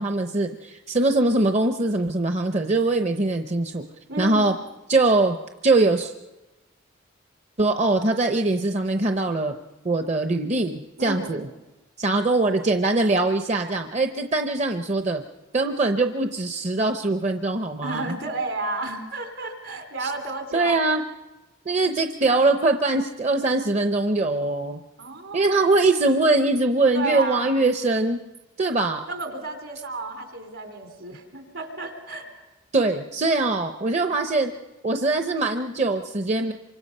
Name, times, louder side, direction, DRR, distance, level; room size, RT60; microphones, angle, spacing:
voice 1, 0.0-3.8 4.2-4.5 4.9-5.4 5.6-6.1 7.6-9.5 9.8-11.5 12.0-15.2 15.5-18.2 20.0-20.1 20.5-21.0 21.7-24.8 25.3-28.2 28.6-29.0 32.7-34.5 34.8-36.5, right 2 dB, 35° right, 6 dB, 0.7 m, -22 dB
voice 2, 4.1-4.5 11.0-11.4 17.8-20.7 25.0-25.5 26.9-27.6 29.1-32.4, right 2 dB, 70° right, 4 dB, 4.0 m, -32 dB
27.0 x 25.0 x 5.5 m, 1.1 s
head